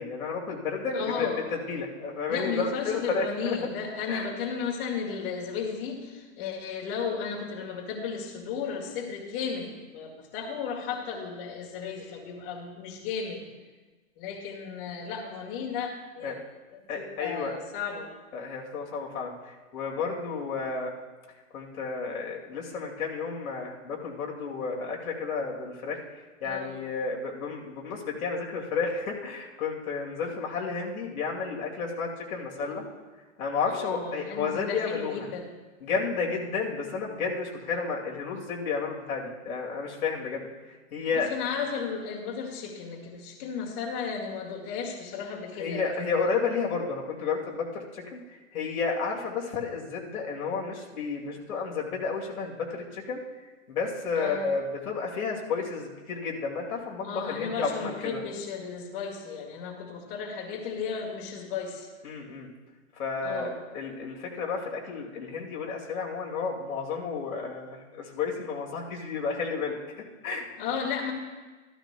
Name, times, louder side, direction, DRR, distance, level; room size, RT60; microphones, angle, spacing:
voice 1, 0.0-3.6 4.1-4.3 16.2-16.4 16.9-17.5 18.3-20.9 21.5-26.0 26.4-32.8 33.4-35.3 35.8-40.5 40.9-41.3 45.6-48.2 48.5-53.2 53.7-58.2 62.0-62.5 63.0-69.8 70.2-70.5, left 5 dB, 85° left, -1 dB, 2.4 m, -32 dB
voice 2, 0.9-1.4 2.3-13.4 14.2-16.4 16.7-18.1 26.4-26.8 32.6-32.7 33.7-35.5 41.1-46.1 54.2-54.5 57.0-61.9 63.2-63.5 70.6-71.1, left 6 dB, 40° left, -1 dB, 2.0 m, -34 dB
14.5 x 13.5 x 2.3 m, 1.3 s
hypercardioid pair, 150°, 41 cm